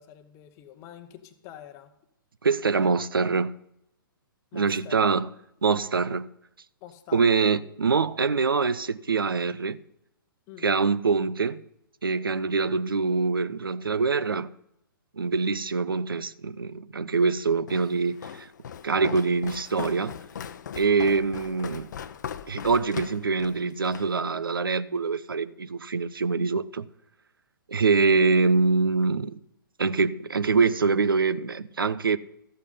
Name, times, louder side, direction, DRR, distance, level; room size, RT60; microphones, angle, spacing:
voice 1, 0.0-1.9 2.7-2.9 4.5-5.0 6.8-7.3 8.1-8.2 10.5-10.7, left 11 dB, 25° left, 0.9 m, -46 dB
voice 2, 2.4-3.5 4.5-5.3 5.6-6.3 7.1-9.8 10.6-11.6 12.0-14.5 15.2-18.5 18.8-20.1 20.7-21.9 22.5-26.9 27.7-29.4 29.8-32.2, right 4 dB, 75° right, 0.6 m, -24 dB
Walk footsteps, 17.7-24.1, left 8 dB, 50° left, 0.7 m, -39 dB
14.0 x 8.2 x 5.6 m
figure-of-eight pair, 120°, 12 cm